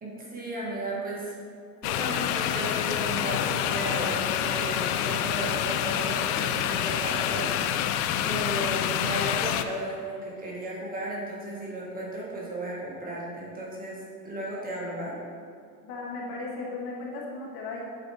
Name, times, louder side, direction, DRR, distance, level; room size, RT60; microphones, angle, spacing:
voice 1, 0.0-1.3 1.8-7.6 8.2-15.1, right 1 dB, 20° right, -5 dB, 1.5 m, -34 dB
sound 1, 1.8-9.6, left 10 dB, 75° left, 0.6 m, -27 dB
voice 2, 15.8-17.8, left 3 dB, 50° left, -2 dB, 1.7 m, -36 dB
8.1 x 4.2 x 4.8 m, 2.4 s
supercardioid pair, 130°, 46 cm